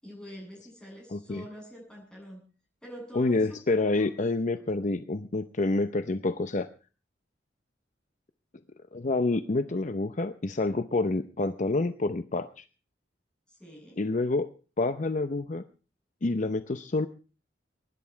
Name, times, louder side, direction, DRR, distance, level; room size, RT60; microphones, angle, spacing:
voice 1, 0.0-2.4 2.8-4.2 4.6-4.7 13.5-14.0, equal, 5° left, -1 dB, 7.8 m, -46 dB
voice 2, 1.1-1.4 3.1-6.7 8.9-12.6 14.0-14.5 14.8-15.6 16.2-17.1, left 2 dB, 45° left, 10 dB, 0.7 m, -28 dB
23.5 x 11.0 x 4.5 m, 0.36 s
head